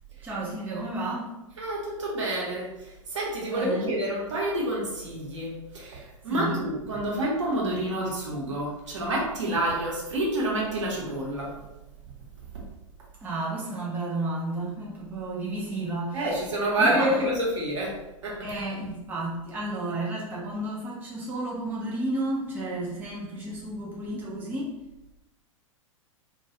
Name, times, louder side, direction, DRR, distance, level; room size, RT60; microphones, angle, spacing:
voice 1, 0.2-1.3 3.5-3.9 6.3-6.6 13.2-16.5 16.8-17.3 18.4-24.7, right 2 dB, 10° right, -5 dB, 0.5 m, -32 dB
voice 2, 1.6-11.5 16.1-18.4, right 1 dB, 60° right, -3 dB, 0.9 m, -28 dB
2.3 x 2.3 x 2.7 m, 0.95 s
figure-of-eight pair, 100°, 17 cm